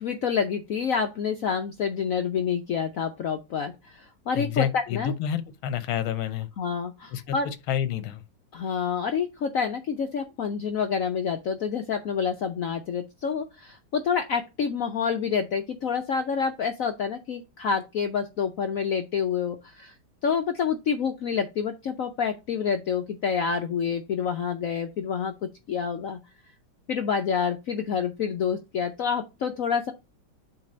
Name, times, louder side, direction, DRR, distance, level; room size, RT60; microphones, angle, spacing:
voice 1, 0.0-5.1 6.6-7.5 8.5-19.9 20.2-25.3 25.7-26.2 26.9-29.9, left 6 dB, 70° left, 0.8 m, -28 dB
voice 2, 4.3-6.5 7.1-8.2, left 9 dB, 85° left, 1.6 m, -29 dB
7.4 x 2.9 x 5.9 m
omnidirectional pair, 2.2 m